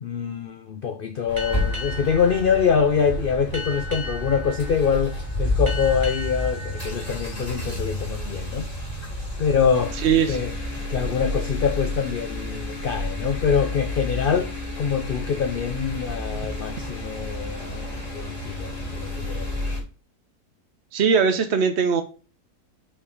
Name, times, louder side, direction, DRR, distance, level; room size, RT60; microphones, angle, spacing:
voice 1, 0.0-8.7 9.4-10.5 10.9-14.5 14.8-19.6, left 6 dB, 65° left, 0.5 m, -25 dB
sound 1, 1.3-19.8, left 1 dB, 25° left, 2.6 m, -30 dB
Boat Water vehicle, 1.4-8.4, left 2 dB, 20° right, 1.1 m, -38 dB
voice 2, 10.0-10.4 20.9-22.0, right 6 dB, 55° right, 0.9 m, -20 dB
5.6 x 4.4 x 4.9 m
omnidirectional pair, 1.6 m